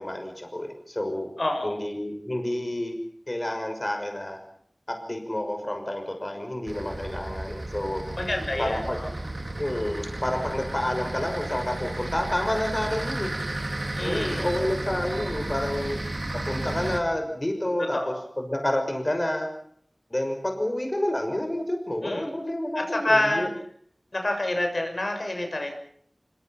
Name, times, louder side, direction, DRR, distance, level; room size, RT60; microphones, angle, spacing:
voice 1, 0.0-1.3 1.6-3.0 3.3-4.4 4.9-8.1 8.6-9.0 9.6-13.3 14.0-16.0 16.5-19.5 20.1-23.5, left 1 dB, 35° left, 4 dB, 6.0 m, -29 dB
voice 2, 1.4-1.8 8.2-9.1 14.0-14.5 17.8-18.2 22.0-22.3 22.8-23.5 24.1-25.7, left 1 dB, 60° left, 3 dB, 7.1 m, -27 dB
sound 1, 6.7-17.0, right 1 dB, 55° right, 4.4 m, -33 dB
27.0 x 26.0 x 5.9 m, 0.65 s
wide cardioid pair, 50°, 0 cm